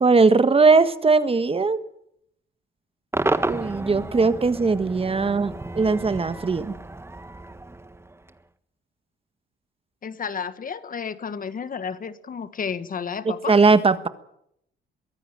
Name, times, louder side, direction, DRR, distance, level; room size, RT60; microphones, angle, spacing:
voice 1, 0.0-1.8 3.4-6.8 13.5-14.1, right 4 dB, 30° right, 12 dB, 1.5 m, -19 dB
Cheering / Crowd / Fireworks, 3.1-8.4, right 2 dB, 10° right, 1.4 m, -31 dB
voice 2, 10.0-13.5, left 6 dB, 45° left, 13 dB, 1.5 m, -32 dB
23.0 x 15.5 x 9.0 m, 0.74 s
cardioid pair, 90°, 20 cm